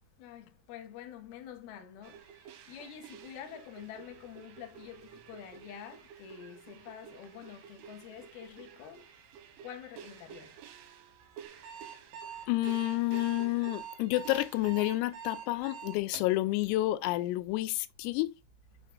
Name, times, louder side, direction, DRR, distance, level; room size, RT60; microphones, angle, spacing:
voice 1, 0.2-9.0 9.6-10.5, left 9 dB, 70° left, 2.4 m, -47 dB
sound 1, 2.0-15.9, right 8 dB, 75° right, 3.4 m, -52 dB
Alarm, 11.5-16.3, right 8 dB, 55° right, 3.0 m, -44 dB
voice 2, 12.5-18.4, left 18 dB, 90° left, 3.3 m, -30 dB
8.5 x 5.4 x 2.4 m
omnidirectional pair, 6.0 m